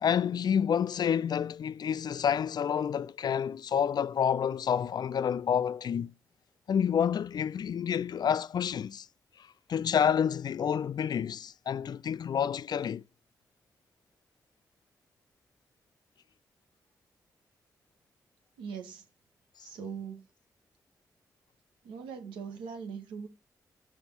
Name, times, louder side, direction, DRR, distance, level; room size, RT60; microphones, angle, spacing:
voice 1, 0.0-6.1 6.7-9.1 9.7-13.0, left 8 dB, 60° left, 0.3 m, -29 dB
voice 2, 18.6-19.1 19.6-20.2 21.8-23.3, right 6 dB, 90° right, 1.0 m, -41 dB
5.2 x 5.1 x 4.3 m
supercardioid pair, 40°, 8 cm